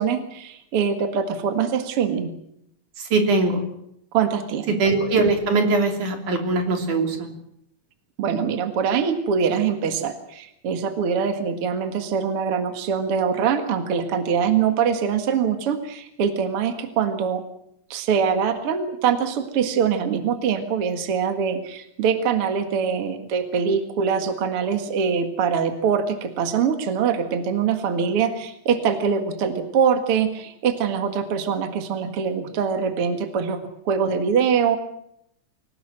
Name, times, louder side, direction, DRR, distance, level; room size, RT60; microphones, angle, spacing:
voice 1, 0.0-2.3 4.1-4.8 8.2-17.4 17.9-34.8, right 7 dB, 50° right, 7 dB, 2.6 m, -23 dB
voice 2, 3.1-3.6 4.8-7.3, right 3 dB, 85° right, 4 dB, 4.7 m, -21 dB
25.5 x 18.0 x 7.7 m, 0.74 s
omnidirectional pair, 3.4 m